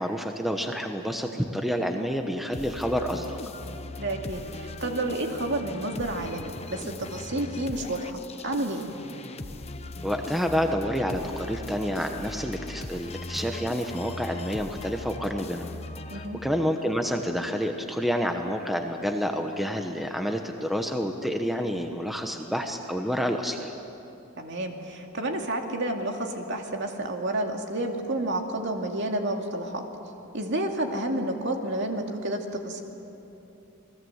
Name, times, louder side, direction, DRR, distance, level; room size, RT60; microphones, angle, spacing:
voice 1, 0.0-3.4 10.0-15.7 16.1-23.7, equal, ahead, 4 dB, 1.0 m, -29 dB
sound 1, 2.5-16.8, left 2 dB, 30° left, 0.9 m, -39 dB
voice 2, 4.0-8.9 16.1-16.4 24.4-29.8 30.3-32.8, right 1 dB, 55° right, 3 dB, 2.3 m, -30 dB
28.5 x 20.5 x 8.1 m, 2.9 s
head